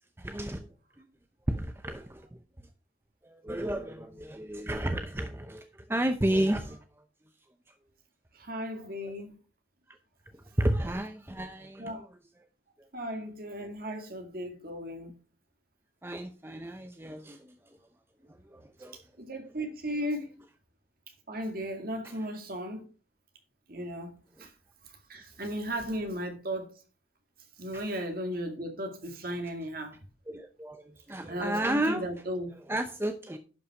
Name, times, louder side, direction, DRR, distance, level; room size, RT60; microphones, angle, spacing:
voice 1, 0.2-0.7 1.0-1.1 1.5-2.3 3.2-6.8 10.6-12.1 16.0-17.5 18.5-19.0 22.0-22.1 27.7-27.8 30.3-32.0 32.7-33.4, right 1 dB, 10° right, 0.6 m, -32 dB
voice 2, 3.6-4.1 8.3-9.4 11.8-12.0 12.9-15.1 19.2-20.3 21.3-22.9 23.7-24.1 24.4-24.5 25.1-26.7 27.6-30.0 31.3-32.5, equal, 50° right, 2.1 m, -36 dB
11.5 x 5.5 x 4.8 m
head